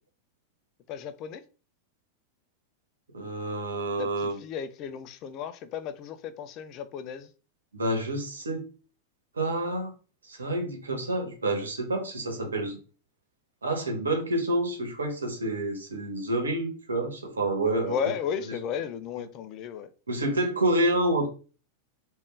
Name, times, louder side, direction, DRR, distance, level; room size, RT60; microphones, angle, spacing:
voice 1, 0.9-1.4 4.0-7.3 17.9-19.9, left 7 dB, 40° left, 0.4 m, -34 dB
voice 2, 3.1-4.4 7.7-8.7 9.3-9.9 10.3-12.8 13.6-17.9 20.1-21.3, right 1 dB, 75° right, 1.1 m, -28 dB
3.5 x 2.5 x 3.7 m
figure-of-eight pair, 90°, 0 cm